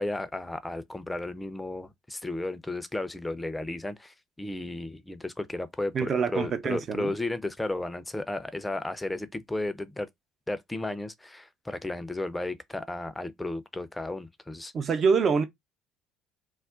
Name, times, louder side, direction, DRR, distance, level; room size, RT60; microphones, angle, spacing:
voice 1, 0.0-10.1 10.5-14.7, left 2 dB, 10° left, 0.5 m, -34 dB
voice 2, 5.9-7.1 14.7-15.4, right 5 dB, 45° right, 0.6 m, -25 dB
2.4 x 2.1 x 3.6 m
hypercardioid pair, 55°, 0 cm